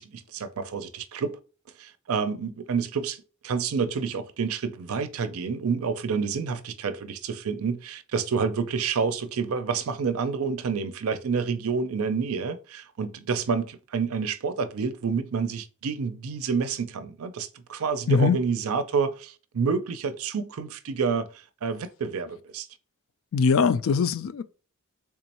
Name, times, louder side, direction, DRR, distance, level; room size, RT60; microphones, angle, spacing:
voice 1, 0.0-1.4 1.8-21.3 21.6-22.7, right 5 dB, 80° right, 0.5 m, -28 dB
voice 2, 23.3-24.4, left 5 dB, 65° left, 0.3 m, -21 dB
3.6 x 3.0 x 2.9 m
head